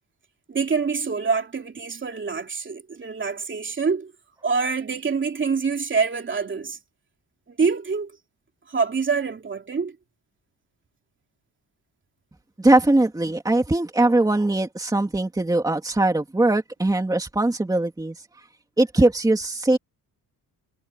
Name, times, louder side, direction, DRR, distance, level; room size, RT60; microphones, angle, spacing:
voice 1, 0.5-4.1 4.4-6.8 7.5-8.1 8.7-10.0, right 5 dB, 30° right, 3.1 m, -25 dB
voice 2, 12.6-18.2 18.8-19.8, right 2 dB, 10° right, 2.6 m, -21 dB
cardioid pair, 155°, 39 cm